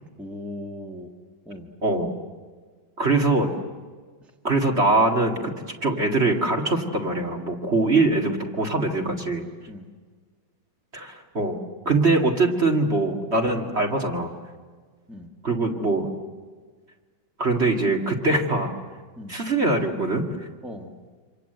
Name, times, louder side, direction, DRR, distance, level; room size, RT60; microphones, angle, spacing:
voice 1, 0.2-1.1 1.5-1.7 4.2-4.3 7.8-8.0 9.7-9.9 15.1-15.3 19.2-19.4 20.6-20.9, left 1 dB, ahead, 1 dB, 1.8 m, -38 dB
voice 2, 3.0-3.5 4.4-5.5 5.8-9.4 10.9-11.6 11.9-14.3 15.4-16.1 17.4-18.7 19.3-20.3, right 2 dB, 35° right, 1 dB, 2.4 m, -22 dB
28.0 x 26.0 x 8.0 m, 1.5 s
omnidirectional pair, 2.1 m